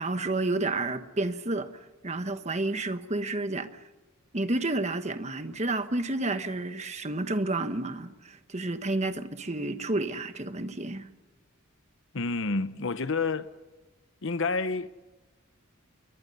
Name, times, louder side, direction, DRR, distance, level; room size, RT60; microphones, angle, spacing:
voice 1, 0.0-1.7 2.0-3.8 4.3-11.1, right 2 dB, 30° right, 1.4 m, -30 dB
voice 2, 12.1-13.5 14.2-14.9, left 3 dB, 65° left, 0.9 m, -29 dB
29.0 x 22.5 x 5.5 m
head